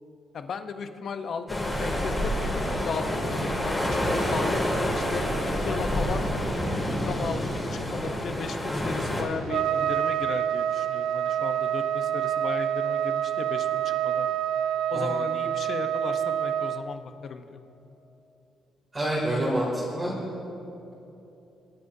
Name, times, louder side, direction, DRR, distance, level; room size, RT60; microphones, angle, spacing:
voice 1, 0.3-5.3 5.6-6.2 6.9-14.3 14.9-17.6, left 5 dB, 55° left, 8 dB, 0.8 m, -36 dB
sound 1, 1.5-9.2, equal, 10° left, 3.2 m, -28 dB
Trumpet, 9.5-16.8, right 10 dB, 80° right, 0.4 m, -27 dB
voice 2, 18.9-20.1, right 1 dB, 25° right, -7 dB, 2.7 m, -27 dB
26.0 x 9.6 x 2.7 m, 2.9 s
cardioid pair, 90°, 0 cm